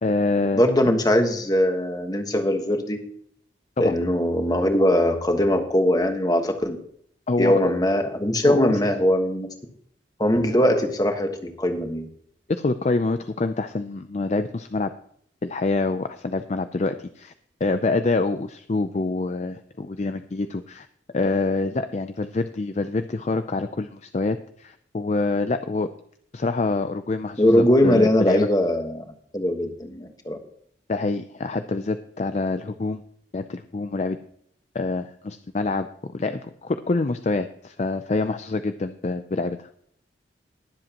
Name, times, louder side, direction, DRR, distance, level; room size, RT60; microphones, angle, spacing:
voice 1, 0.0-0.6 3.8-4.0 7.3-7.6 8.4-8.8 12.5-14.9 15.4-17.3 17.6-20.9 21.1-25.9 26.3-28.5 30.9-33.0 33.3-34.2 34.7-39.7, left 3 dB, 35° left, 9 dB, 0.4 m, -26 dB
voice 2, 0.6-3.0 3.8-6.8 7.4-9.5 10.2-12.1 27.4-29.0 29.3-30.4, left 1 dB, 20° left, 5 dB, 1.3 m, -21 dB
20.5 x 7.7 x 2.9 m, 0.65 s
head